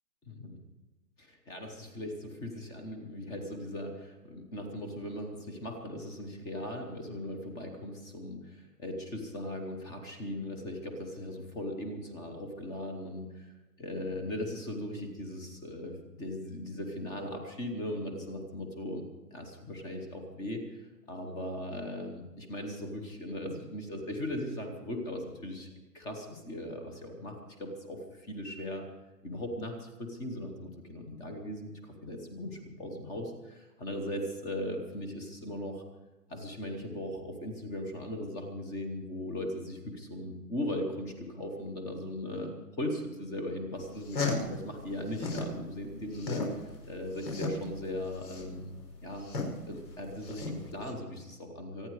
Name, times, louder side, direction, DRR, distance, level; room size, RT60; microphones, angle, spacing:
voice 1, 1.2-13.5 13.8-19.1 19.3-25.7 25.9-28.9 29.2-35.8 36.3-48.8 49.0-49.3 49.7-51.9, left 1 dB, 10° left, 4 dB, 0.9 m, -38 dB
sound 1, 43.8-45.6 45.9-50.9, left 3 dB, 85° left, 5.6 m, -35 dB
24.0 x 9.4 x 4.8 m, 1.1 s
hypercardioid pair, 160°, 49 cm